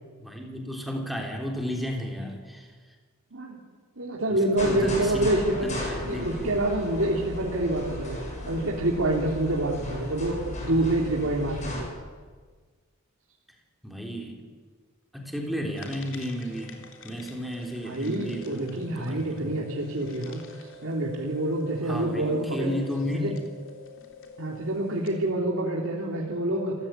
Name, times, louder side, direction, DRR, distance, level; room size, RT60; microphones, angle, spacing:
voice 1, 0.2-2.7 4.3-4.4 4.7-5.3 5.6-6.6 13.8-14.4 15.1-19.5 21.8-23.4, equal, ahead, 1 dB, 3.6 m, -33 dB
voice 2, 4.0-5.7 6.0-8.2 8.4-11.9 17.8-22.7 23.1-23.3 24.4-26.7, right 1 dB, 65° right, -2 dB, 3.1 m, -27 dB
sound 1, 4.6-11.9, left 1 dB, 35° left, 7.3 m, -35 dB
sound 2, 15.7-25.3, equal, 65° left, 3.3 m, -46 dB
26.5 x 15.5 x 9.1 m, 1.5 s
head